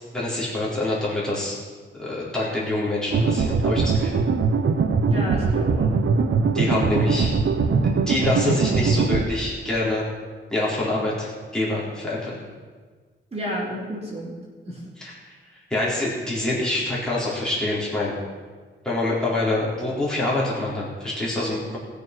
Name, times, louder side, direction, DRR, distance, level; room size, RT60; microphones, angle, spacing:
voice 1, 0.1-1.6 1.9-4.3 6.5-7.3 8.1-10.1 10.5-12.4 15.0-15.1 15.7-18.1 18.8-21.8, left 2 dB, 5° left, -7 dB, 4.1 m, -25 dB
sound 1, 3.1-9.2, right 4 dB, 70° right, 1.0 m, -21 dB
voice 2, 5.1-5.9 6.6-6.7 13.3-14.4 14.7-14.8, equal, 30° right, -5 dB, 3.9 m, -31 dB
20.5 x 6.9 x 6.1 m, 1.5 s
wide cardioid pair, 120°, 21 cm